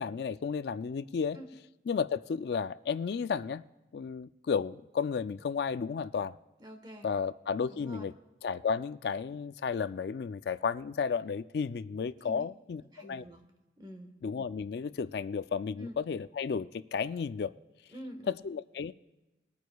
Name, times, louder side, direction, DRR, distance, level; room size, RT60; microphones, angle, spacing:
voice 1, 0.0-1.4 1.9-3.6 3.9-6.3 7.0-8.1 8.4-13.2 14.2-17.5 18.3-18.9, left 6 dB, 65° left, 0.3 m, -33 dB
voice 2, 6.6-7.1 7.7-8.1 12.2-12.4 12.9-13.4 13.8-14.1 15.8-15.9 17.9-18.4, equal, 25° right, 1.3 m, -46 dB
21.5 x 9.3 x 2.3 m
head